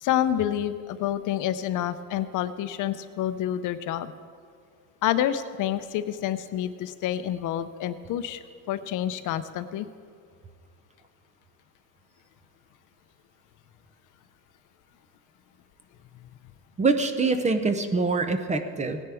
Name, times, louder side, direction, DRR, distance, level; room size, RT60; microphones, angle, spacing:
voice 1, 0.0-4.1 5.0-8.4 8.7-9.9, left 11 dB, 60° left, 12 dB, 0.6 m, -28 dB
voice 2, 16.8-19.0, right 3 dB, 20° right, 8 dB, 0.6 m, -24 dB
17.5 x 10.0 x 3.5 m, 2.1 s
cardioid pair, 140°, 34 cm